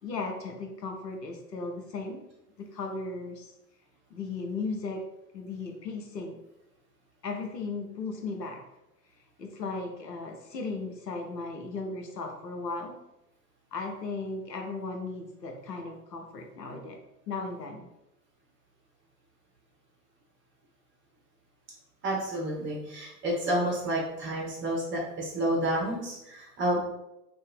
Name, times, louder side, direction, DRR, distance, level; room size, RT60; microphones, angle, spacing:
voice 1, 0.0-2.3 2.6-3.5 4.1-5.1 5.3-6.4 7.2-8.6 9.4-13.0 13.7-17.0 17.3-17.9, left 3 dB, 85° left, 3 dB, 0.7 m, -36 dB
voice 2, 22.0-26.8, right 1 dB, 25° right, -3 dB, 1.1 m, -30 dB
2.6 x 2.5 x 3.5 m, 0.89 s
figure-of-eight pair, 90°, 48 cm